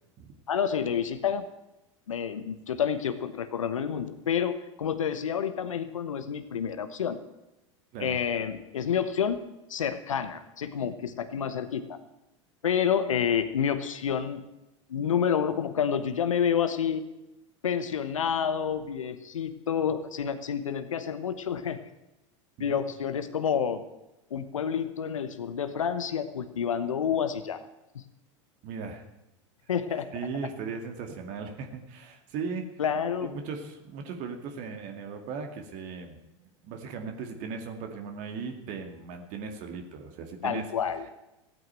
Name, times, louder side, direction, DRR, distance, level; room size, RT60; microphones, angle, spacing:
voice 1, 0.5-1.4 2.1-7.2 8.0-9.4 9.7-12.0 12.6-14.4 14.9-17.1 17.6-21.8 22.6-23.8 24.3-27.6 27.9-28.0 29.7-30.1 32.8-33.3 40.4-41.1, left 8 dB, 85° left, 11 dB, 1.1 m, -29 dB
voice 2, 28.6-29.0 30.1-32.7 33.2-36.2 36.6-40.7, right 5 dB, 50° right, 5 dB, 2.2 m, -37 dB
15.0 x 9.4 x 8.9 m, 0.96 s
hypercardioid pair, 95°, 16 cm